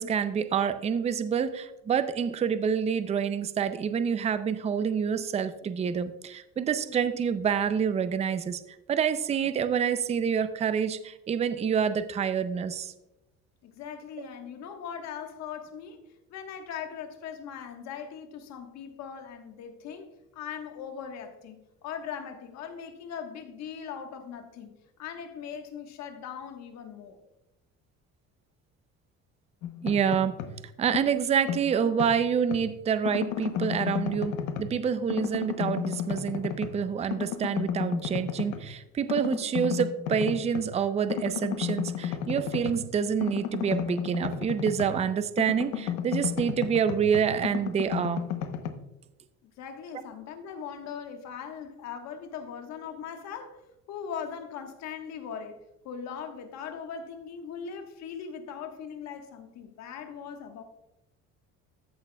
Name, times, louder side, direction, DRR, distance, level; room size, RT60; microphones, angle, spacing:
voice 1, 0.0-8.6 8.9-12.9 29.8-30.4 30.8-48.2, right 7 dB, 20° right, 0.4 m, -27 dB
voice 2, 13.6-16.0 16.3-20.1 20.3-24.7 25.0-27.2 49.4-53.6 53.9-55.6 55.8-60.6, left 7 dB, 65° left, 1.3 m, -40 dB
sound 1, 29.6-30.6 30.9-32.7 33.0-34.8 35.1-36.8 37.1-38.7 39.1-40.7 41.1-45.1 45.4-48.7, left 9 dB, 85° left, 0.9 m, -33 dB
14.5 x 6.5 x 2.2 m
cardioid pair, 135°, 30 cm